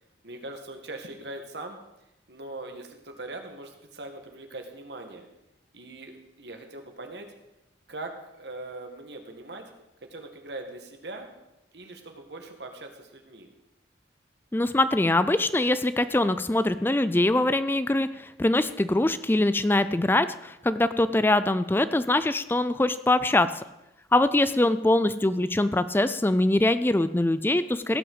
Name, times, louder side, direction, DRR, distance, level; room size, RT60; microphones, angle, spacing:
voice 1, 0.2-1.8 2.3-5.3 5.7-7.3 7.9-8.1 8.4-9.6 10.1-11.3 11.7-13.5, right 2 dB, 70° right, 4 dB, 2.0 m, -41 dB
voice 2, 14.5-23.6 24.1-28.0, left 2 dB, 10° left, 13 dB, 0.4 m, -23 dB
16.5 x 6.1 x 8.0 m, 0.93 s
head